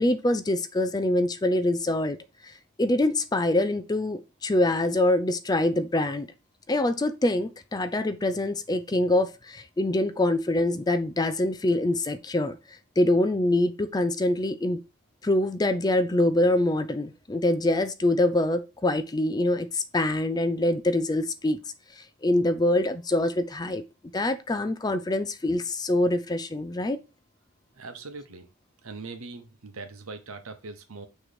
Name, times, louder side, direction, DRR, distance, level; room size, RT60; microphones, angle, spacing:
voice 1, 0.0-2.2 2.4-2.5 2.8-6.3 6.7-12.6 13.0-14.8 15.2-21.6 22.0-23.8 24.1-27.0, left 1 dB, 20° left, 0.4 m, -25 dB
voice 2, 27.8-28.5 28.8-31.1, right 3 dB, 80° right, 1.0 m, -41 dB
6.3 x 3.1 x 5.0 m
head